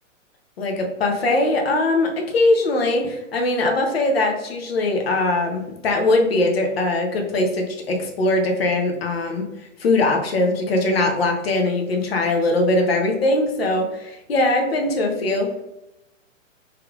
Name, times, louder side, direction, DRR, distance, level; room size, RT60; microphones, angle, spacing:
voice 1, 0.6-9.4 9.8-15.5, left 2 dB, 50° left, 2 dB, 0.7 m, -21 dB
3.4 x 3.2 x 2.3 m, 0.91 s
hypercardioid pair, 170°, 40 cm